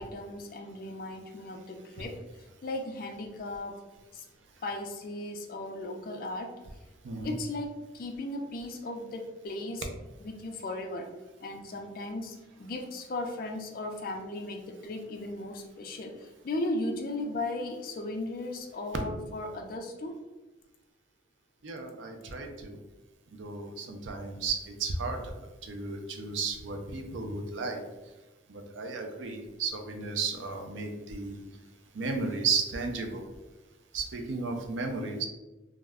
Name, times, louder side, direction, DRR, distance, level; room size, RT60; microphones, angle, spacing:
voice 1, 0.0-2.2 2.6-3.8 4.1-4.2 4.6-6.6 7.2-9.9 10.2-11.1 11.4-20.2, left 2 dB, 50° left, 4 dB, 0.4 m, -36 dB
voice 2, 21.6-22.8 23.4-25.3 25.6-27.8 28.5-31.4 31.9-33.2 33.9-35.3, right 4 dB, 80° right, 4 dB, 0.5 m, -34 dB
2.3 x 2.1 x 3.4 m, 1.1 s
head